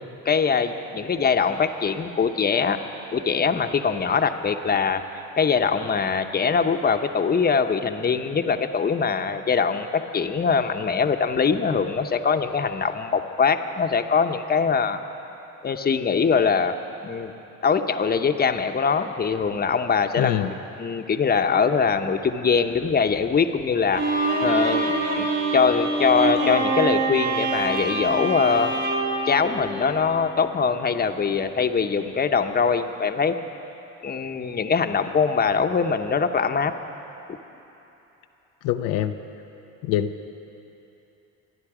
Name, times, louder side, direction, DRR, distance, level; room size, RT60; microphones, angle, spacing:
voice 1, 0.2-2.8 3.1-5.0 5.4-15.0 15.6-16.8 17.0-17.3 17.6-20.5 20.8-24.0 24.4-28.7 29.3-33.4 34.0-36.7, left 5 dB, 25° left, 7 dB, 0.9 m, -22 dB
voice 2, 20.2-20.5 38.6-39.2 39.8-40.3, left 11 dB, 80° left, 7 dB, 0.7 m, -24 dB
Bowed string instrument, 23.9-30.2, right 2 dB, 50° right, 4.6 m, -25 dB
26.0 x 9.8 x 4.9 m, 3.0 s
supercardioid pair, 80°, 35 cm